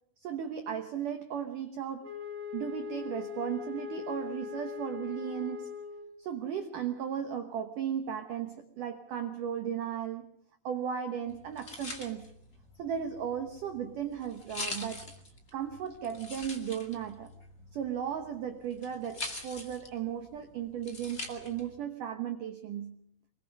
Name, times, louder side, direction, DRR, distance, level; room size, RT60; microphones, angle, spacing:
voice 1, 0.2-2.1 2.5-5.8 6.2-10.3 10.6-12.3 12.8-15.1 15.5-17.3 17.7-23.0, right 8 dB, 80° right, 7 dB, 1.8 m, -36 dB
Wind instrument woodwind instrument, 2.0-6.2, left 7 dB, 60° right, 1.4 m, -40 dB
sound 1, 11.3-21.7, left 2 dB, 35° left, 1.0 m, -44 dB
25.0 x 22.5 x 5.4 m, 0.66 s
omnidirectional pair, 5.6 m